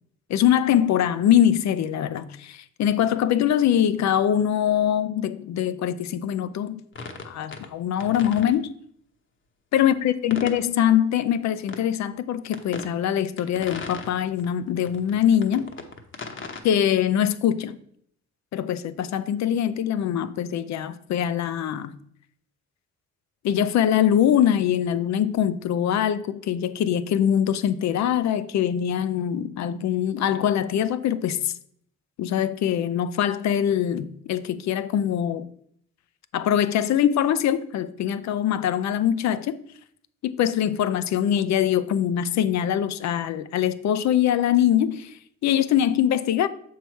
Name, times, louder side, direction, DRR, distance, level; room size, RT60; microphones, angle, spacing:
voice 1, 0.3-6.8 7.2-8.7 9.7-15.7 16.6-17.8 18.5-21.9 23.4-31.5 32.2-35.5 36.3-39.6 40.2-46.5, left 10 dB, 65° left, 0.6 m, -23 dB
sound 1, 6.9-7.7 8.0-8.5 10.3-10.6 11.7-11.8 12.5-12.9 13.4-14.5 14.9-16.6, left 4 dB, 40° left, 1.0 m, -37 dB
6.9 x 4.7 x 4.5 m
cardioid pair, 90°, 30 cm